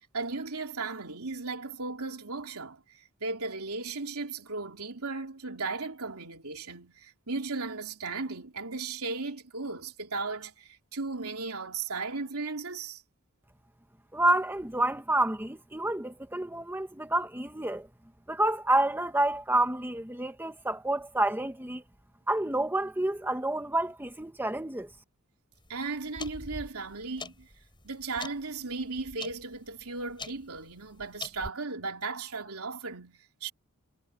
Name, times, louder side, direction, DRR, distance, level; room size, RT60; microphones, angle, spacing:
voice 1, 0.1-13.0 25.7-27.5 27.8-33.5, right 3 dB, 80° right, 3.3 m, -36 dB
voice 2, 14.1-17.9 18.3-21.8 22.3-24.9, right 1 dB, 10° right, 1.5 m, -28 dB
sound 1, 25.6-31.5, left 3 dB, 20° left, 6.2 m, -45 dB
head